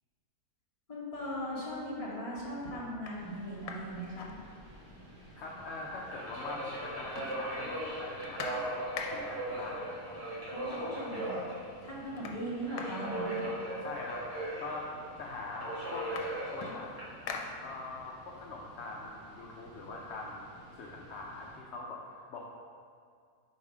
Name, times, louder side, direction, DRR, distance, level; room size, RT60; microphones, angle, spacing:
voice 1, 0.9-4.3 10.5-11.4 11.8-13.5, equal, 25° left, -6 dB, 1.2 m, -39 dB
sound 1, 1.5-2.0 2.5-2.6 2.9-5.0 5.3-5.4 5.7-6.5 6.8-9.5 10.5-10.6 10.9-11.4 11.7-14.1 14.9-15.0 15.3-18.1 18.5-20.3, left 4 dB, 85° left, 1.2 m, -45 dB
Subway metro underground, 3.1-21.5, right 1 dB, 80° right, 2.1 m, -40 dB
voice 2, 5.4-8.7 9.1-9.9 10.7-11.4 12.2-12.4 13.8-14.9 15.2-16.1 16.5-17.1 17.5-22.4, left 3 dB, 60° left, -3 dB, 0.7 m, -43 dB
5.5 x 4.0 x 4.8 m, 2.1 s
omnidirectional pair, 1.7 m